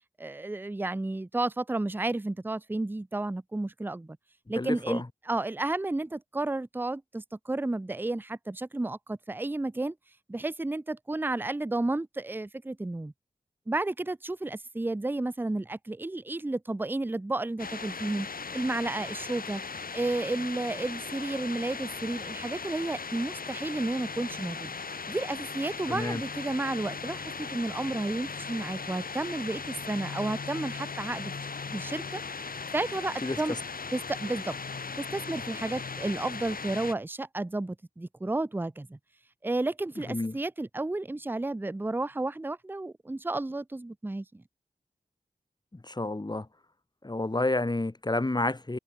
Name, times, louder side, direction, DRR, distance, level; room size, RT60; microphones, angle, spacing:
voice 1, 0.2-4.2 4.5-9.9 10.3-13.1 13.7-18.3 18.5-19.6 19.9-24.7 25.1-31.3 31.7-32.2 32.7-33.6 33.9-34.5 35.0-39.0 39.4-44.4, right 2 dB, 15° right, 0.5 m, -32 dB
voice 2, 4.6-5.0 25.9-26.2 33.2-33.4 40.1-40.3 45.8-46.5 47.0-48.8, left 2 dB, 30° left, 1.6 m, -29 dB
sound 1, 17.6-36.9, left 5 dB, 70° left, 1.9 m, -38 dB
cardioid pair, 50°, 15 cm